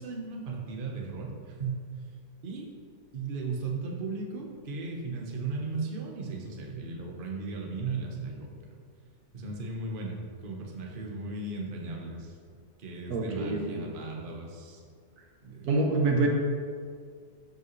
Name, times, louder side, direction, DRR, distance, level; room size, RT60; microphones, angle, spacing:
voice 1, 0.0-1.9 2.4-2.7 3.1-8.5 9.3-12.4 12.8-14.8 15.4-15.7 16.1-16.3, right 3 dB, 35° right, -1 dB, 1.1 m, -36 dB
voice 2, 13.1-13.8 15.7-16.3, right 3 dB, 70° right, 1 dB, 1.5 m, -26 dB
13.5 x 5.4 x 3.2 m, 2.1 s
omnidirectional pair, 1.8 m